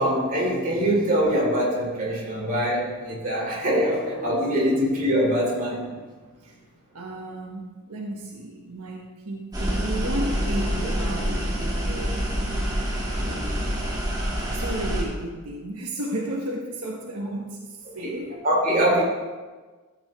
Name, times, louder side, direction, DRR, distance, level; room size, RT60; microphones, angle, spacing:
voice 1, 0.0-5.9 18.0-18.1 18.4-19.0, equal, 40° right, -4 dB, 3.4 m, -23 dB
voice 2, 6.9-12.2 13.2-13.8 14.5-18.4, right 1 dB, 85° right, -1 dB, 1.2 m, -33 dB
sound 1, 9.5-15.0, equal, 15° right, 1.9 m, -26 dB
14.0 x 8.6 x 3.2 m, 1.3 s
head